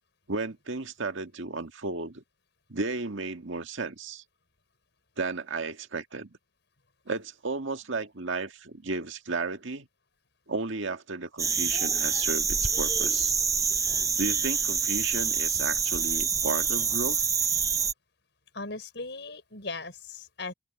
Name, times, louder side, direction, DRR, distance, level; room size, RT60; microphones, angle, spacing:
voice 1, 0.3-2.2 2.7-4.2 5.2-6.3 7.1-9.9 10.5-13.3 14.2-17.2, right 3 dB, 85° right, 1.8 m, -33 dB
sound 1, 11.4-17.9, right 6 dB, 15° right, 0.5 m, -26 dB
voice 2, 18.5-20.5, left 3 dB, 65° left, 5.5 m, -38 dB
open air
head